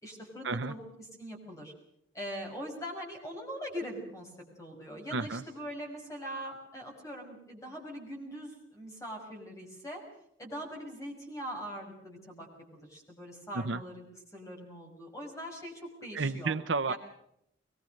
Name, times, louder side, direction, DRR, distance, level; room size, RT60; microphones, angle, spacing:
voice 1, 0.0-0.8 1.2-1.7 2.1-4.3 4.6-10.0 10.4-14.1 14.3-16.6 16.9-17.0, equal, 15° left, 0 dB, 6.1 m, -42 dB
voice 2, 5.1-5.4 13.5-13.8 16.1-16.9, right 4 dB, 70° right, 13 dB, 0.8 m, -31 dB
23.0 x 21.0 x 6.5 m, 0.75 s
head